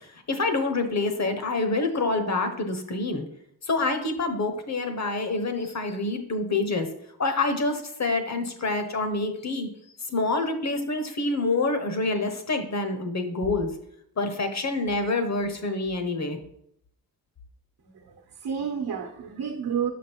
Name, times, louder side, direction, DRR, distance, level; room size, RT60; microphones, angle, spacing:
voice 1, 0.3-3.2 3.7-6.9 7.2-9.7 10.1-13.7 14.2-16.4, left 3 dB, 45° left, 7 dB, 1.0 m, -27 dB
voice 2, 17.8-19.9, right 7 dB, 70° right, 2 dB, 1.0 m, -31 dB
6.3 x 5.2 x 4.5 m, 0.71 s
wide cardioid pair, 140°, 38 cm